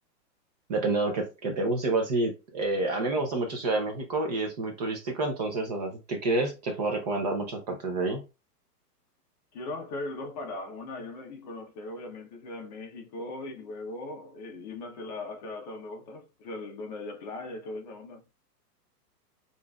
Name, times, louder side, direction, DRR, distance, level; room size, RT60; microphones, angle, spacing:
voice 1, 0.7-8.2, right 2 dB, 25° right, 0.6 m, -29 dB
voice 2, 9.5-18.2, left 2 dB, 25° left, 0.8 m, -39 dB
6.8 x 2.6 x 2.3 m
hypercardioid pair, 155°, 48 cm